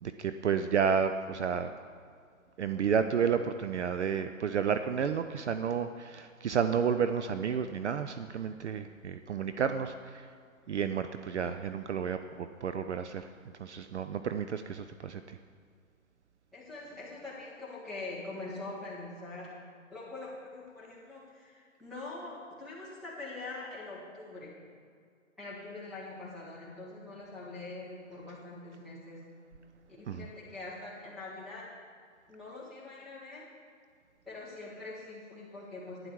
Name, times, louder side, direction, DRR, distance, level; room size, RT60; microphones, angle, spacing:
voice 1, 0.0-1.7 2.6-10.3 10.7-13.3 13.6-15.4 30.1-30.3, right 7 dB, 60° right, 9 dB, 0.5 m, -31 dB
voice 2, 16.5-19.5 19.9-24.5 25.4-29.2 30.0-31.7 32.3-33.5 34.2-36.1, left 2 dB, ahead, -11 dB, 1.8 m, -43 dB
12.0 x 9.7 x 4.6 m, 2.1 s
hypercardioid pair, 160°, 41 cm